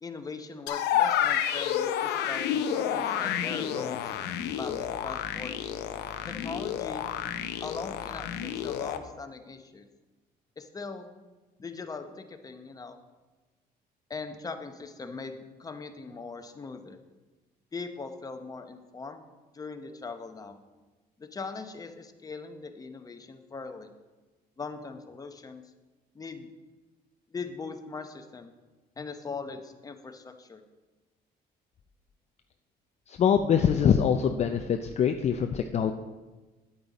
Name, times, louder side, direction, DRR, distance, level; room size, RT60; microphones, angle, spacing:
voice 1, 0.0-4.0 4.6-5.7 6.3-7.1 7.6-9.9 10.6-11.1 11.6-13.0 14.1-17.0 17.7-19.2 19.5-20.6 21.2-23.9 24.6-25.7 26.1-26.5 27.3-28.5 29.0-30.6, left 4 dB, 20° left, 7 dB, 0.8 m, -40 dB
sound 1, 0.7-9.0, left 10 dB, 80° left, 0.7 m, -30 dB
voice 2, 33.1-35.9, left 8 dB, 40° left, 6 dB, 0.5 m, -24 dB
8.9 x 8.7 x 4.1 m, 1.2 s
cardioid pair, 110°, 17 cm